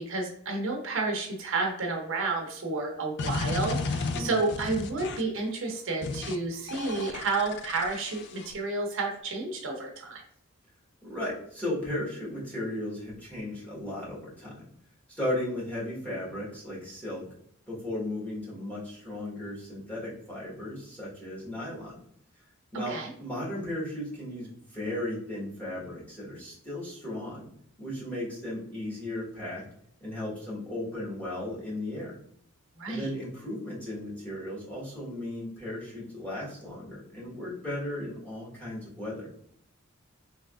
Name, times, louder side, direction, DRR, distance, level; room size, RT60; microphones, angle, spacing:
voice 1, 0.0-10.2 22.9-23.1 32.8-33.1, right 3 dB, 65° right, 1 dB, 0.7 m, -31 dB
sound 1, 3.2-5.4 6.0-6.4 6.7-8.5, left 3 dB, 55° left, 0.3 m, -33 dB
voice 2, 4.1-4.4 11.0-14.7 15.2-17.3 17.7-22.0 22.7-27.5 27.8-29.6 30.0-32.1 32.8-39.3, left 1 dB, 5° left, -6 dB, 1.2 m, -35 dB
3.4 x 3.0 x 2.4 m, 0.69 s
head